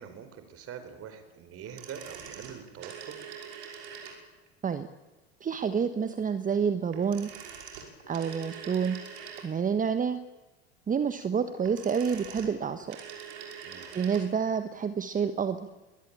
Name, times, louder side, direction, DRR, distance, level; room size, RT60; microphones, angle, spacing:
voice 1, 0.0-3.1 13.6-13.9, right 8 dB, 40° right, 10 dB, 4.5 m, -44 dB
sound 1, 1.6-4.5 6.9-9.8 11.4-14.3 14.6-14.7, right 7 dB, 70° right, 5.5 m, -44 dB
voice 2, 5.4-7.3 8.1-9.0 9.4-10.2 10.9-13.0 13.9-15.6, right 6 dB, 25° right, 10 dB, 1.3 m, -28 dB
23.0 x 17.5 x 8.9 m, 1.2 s
hypercardioid pair, 80°, 34 cm